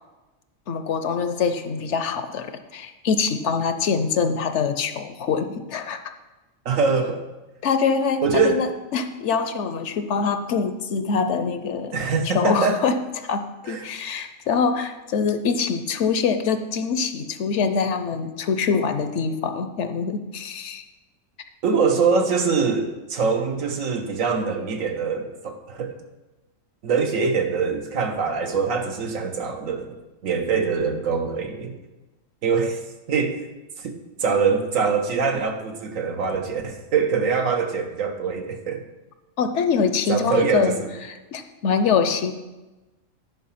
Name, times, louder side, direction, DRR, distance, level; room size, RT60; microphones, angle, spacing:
voice 1, 0.7-6.1 7.6-20.8 39.4-40.8 41.1-42.3, left 5 dB, 65° left, 9 dB, 0.9 m, -24 dB
voice 2, 6.6-7.2 8.2-8.6 11.9-12.8 13.6-13.9 21.6-25.9 26.8-31.8 32.4-32.8 33.1-33.4 33.8-38.8 40.1-40.9, right 5 dB, 80° right, 4 dB, 1.4 m, -23 dB
10.5 x 4.7 x 5.7 m, 1.1 s
omnidirectional pair, 1.4 m